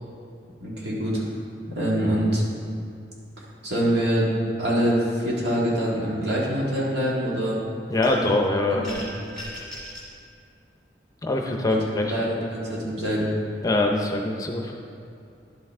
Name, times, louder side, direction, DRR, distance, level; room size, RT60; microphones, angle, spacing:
voice 1, 0.6-1.2 1.7-2.4 3.6-4.3 4.6-7.6 8.1-8.4 8.7-9.0 11.7-13.3, equal, 70° right, -5 dB, 2.0 m, -25 dB
voice 2, 7.9-8.9 11.2-12.1 13.6-14.7, left 2 dB, 20° left, 2 dB, 0.6 m, -23 dB
sound 1, 8.0-8.4 8.8-10.1, equal, 5° left, 1.8 m, -38 dB
11.0 x 5.7 x 3.6 m, 2.5 s
head